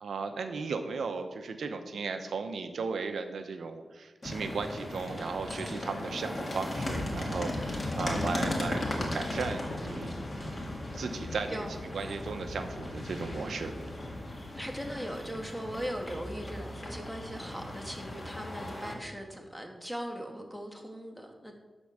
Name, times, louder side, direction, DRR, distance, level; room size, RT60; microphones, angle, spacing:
voice 1, 0.0-10.2 10.9-11.7 11.9-13.7, right 4 dB, 85° right, 7 dB, 0.8 m, -36 dB
sound 1, 4.2-18.9, left 1 dB, 35° left, 2.5 m, -37 dB
sound 2, 6.7-16.1, left 3 dB, 60° left, 1.0 m, -42 dB
voice 2, 14.6-21.6, equal, ahead, 2 dB, 2.0 m, -39 dB
11.5 x 4.5 x 7.1 m, 1.4 s
cardioid pair, 60°, 0 cm